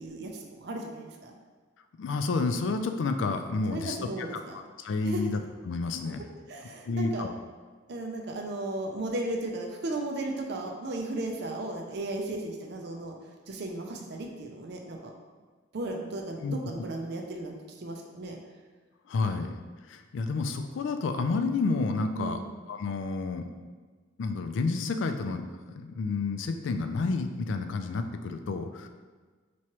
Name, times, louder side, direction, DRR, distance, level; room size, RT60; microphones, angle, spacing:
voice 1, 0.0-1.3 3.7-4.6 5.0-5.3 6.5-7.3 7.9-13.2 13.5-15.0 15.7-18.4 22.1-22.5, right 2 dB, 55° right, 1 dB, 0.5 m, -35 dB
voice 2, 2.0-6.2 6.9-7.3 16.4-16.5 19.1-19.5 19.9-22.4 22.7-23.5 24.2-25.5 25.8-28.9, left 3 dB, 70° left, 7 dB, 0.3 m, -30 dB
4.7 x 3.0 x 2.9 m, 1.4 s
head